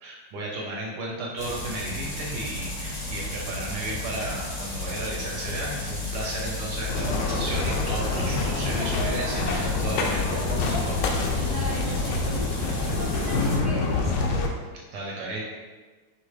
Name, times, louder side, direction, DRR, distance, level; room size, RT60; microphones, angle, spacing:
voice 1, 0.0-11.1 14.9-15.4, right 2 dB, 65° right, -3 dB, 1.2 m, -34 dB
sound 1, 1.4-13.6, left 2 dB, 45° left, 0.6 m, -33 dB
sound 2, 6.9-14.5, left 3 dB, 75° left, 1.0 m, -26 dB
voice 2, 11.4-14.4, right 2 dB, 85° right, -7 dB, 0.7 m, -37 dB
4.8 x 2.8 x 3.2 m, 1.4 s
omnidirectional pair, 2.3 m